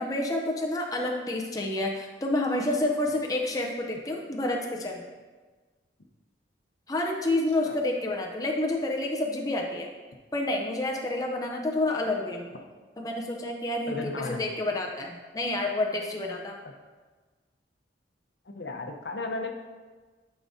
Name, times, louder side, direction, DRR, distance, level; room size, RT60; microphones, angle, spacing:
voice 1, 0.0-5.0 6.9-9.9 10.3-12.5 13.0-16.6, left 2 dB, 20° left, 0 dB, 0.5 m, -29 dB
voice 2, 13.9-14.4 18.5-19.5, left 3 dB, 70° left, 3 dB, 0.8 m, -34 dB
11.5 x 4.9 x 2.7 m, 1.4 s
head